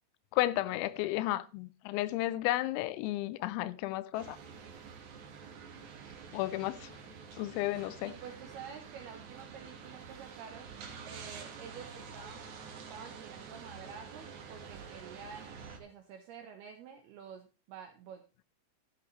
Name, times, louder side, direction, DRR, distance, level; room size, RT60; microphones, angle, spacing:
voice 1, 0.3-4.4 6.3-7.0 7.4-8.1, left 16 dB, 85° left, 3.4 m, -33 dB
sound 1, 4.1-15.8, right 6 dB, 65° right, 1.9 m, -48 dB
voice 2, 8.0-10.7 11.1-12.4 12.7-18.4, right 7 dB, 85° right, 2.2 m, -49 dB
13.5 x 10.0 x 3.1 m
omnidirectional pair, 5.9 m